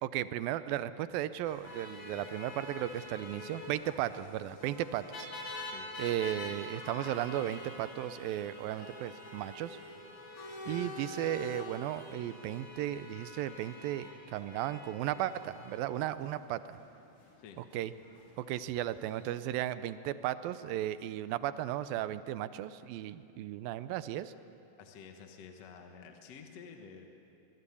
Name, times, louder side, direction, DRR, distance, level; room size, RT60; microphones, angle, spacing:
voice 1, 0.0-5.3 6.0-9.8 10.7-16.8 17.6-17.9 18.4-24.3, right 12 dB, 85° right, 14 dB, 2.5 m, -35 dB
sound 1, 1.4-19.3, left 2 dB, 40° left, 3.9 m, -46 dB
voice 2, 10.6-10.9 17.4-17.6 24.8-27.1, left 6 dB, 55° left, 4 dB, 2.2 m, -50 dB
24.0 x 21.5 x 8.5 m, 2.7 s
omnidirectional pair, 4.0 m